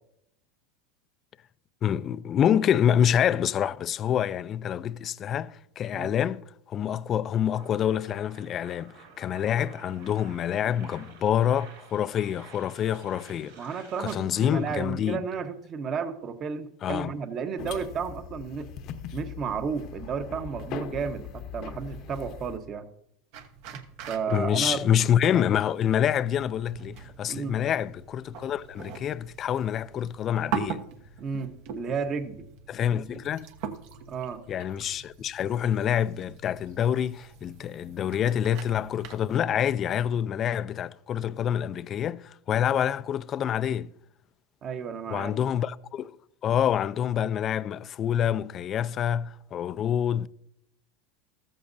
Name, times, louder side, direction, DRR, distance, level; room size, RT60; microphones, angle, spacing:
voice 1, 1.8-13.7 14.0-15.2 16.8-17.1 24.3-30.8 32.7-33.5 34.5-43.9 45.1-46.2 46.4-50.3, left 9 dB, 35° left, 0.4 m, -27 dB
sound 1, 7.5-15.3, right 5 dB, 90° right, 4.8 m, -52 dB
voice 2, 13.6-18.7 19.1-22.9 24.1-24.8 27.3-27.6 31.2-32.4 34.1-34.4 44.6-45.4, right 6 dB, 35° right, 1.1 m, -32 dB
sound 2, 17.6-22.6, left 8 dB, 50° left, 0.9 m, -40 dB
sound 3, 23.3-39.4, right 7 dB, 60° right, 1.2 m, -42 dB
14.5 x 14.0 x 2.7 m
supercardioid pair, 120°, 0 cm